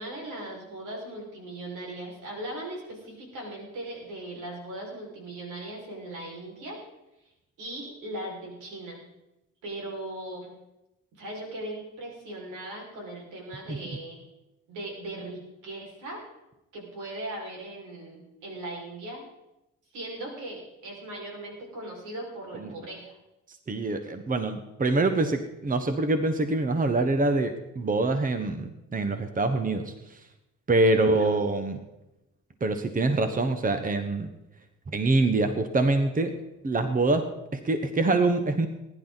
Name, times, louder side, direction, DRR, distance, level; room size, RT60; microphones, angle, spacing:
voice 1, 0.0-6.8 7.6-9.0 9.6-10.5 11.2-14.3 14.7-16.2 16.7-19.2 19.9-23.2 31.0-31.3, right 1 dB, 85° right, -1 dB, 5.6 m, -39 dB
voice 2, 23.5-30.2 30.7-31.8 32.6-34.3 34.9-36.3 36.6-38.7, right 2 dB, 25° right, 8 dB, 1.3 m, -25 dB
20.0 x 11.0 x 4.1 m, 0.93 s
cardioid pair, 90°, 30 cm